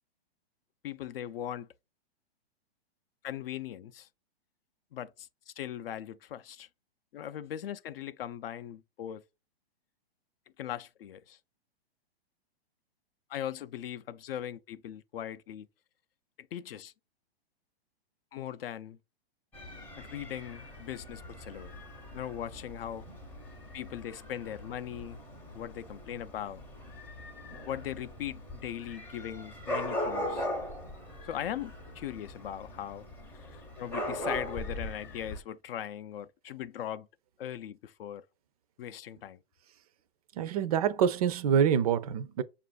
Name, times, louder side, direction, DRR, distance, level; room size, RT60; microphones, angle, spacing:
voice 1, 0.8-1.7 3.2-4.1 4.9-6.7 7.1-9.2 10.6-11.4 13.3-15.7 16.5-16.9 18.3-19.0 20.0-21.7 22.1-23.1 23.7-25.2 25.5-26.7 27.6-30.5 31.2-33.0 33.3-37.1 37.4-38.3 38.8-39.4, left 10 dB, 70° left, 0.5 m, -39 dB
Dog / Cat, 19.5-35.4, left 1 dB, 5° left, 0.6 m, -40 dB
voice 2, 40.4-42.4, right 8 dB, 40° right, 0.4 m, -26 dB
6.7 x 2.5 x 2.3 m
hypercardioid pair, 150°, 31 cm